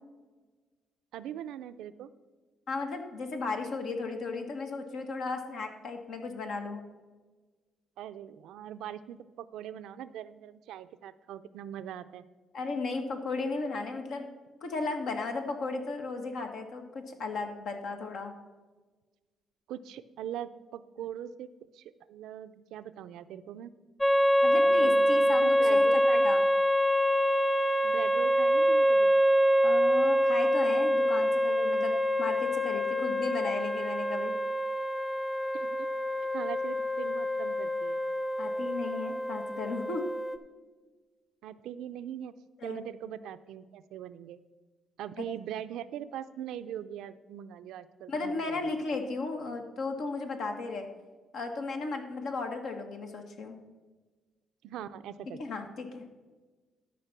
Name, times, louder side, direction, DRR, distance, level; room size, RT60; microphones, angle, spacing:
voice 1, 1.1-2.1 8.0-12.2 19.7-23.7 24.5-26.3 27.8-29.1 35.5-35.9 36.3-38.0 41.4-42.3 42.6-44.4 45.0-48.6 54.6-55.4, right 10 dB, 85° right, 12 dB, 0.5 m, -41 dB
voice 2, 2.7-6.8 12.5-14.3 14.6-18.3 24.4-26.4 29.6-34.3 38.4-40.0 42.6-42.8 45.2-45.3 48.1-50.9 51.3-53.6 55.4-56.0, left 3 dB, 75° left, 4 dB, 1.6 m, -35 dB
sound 1, 24.0-40.4, equal, 15° left, 0.9 m, -26 dB
12.5 x 5.2 x 5.9 m, 1.3 s
cardioid pair, 90°, 0 cm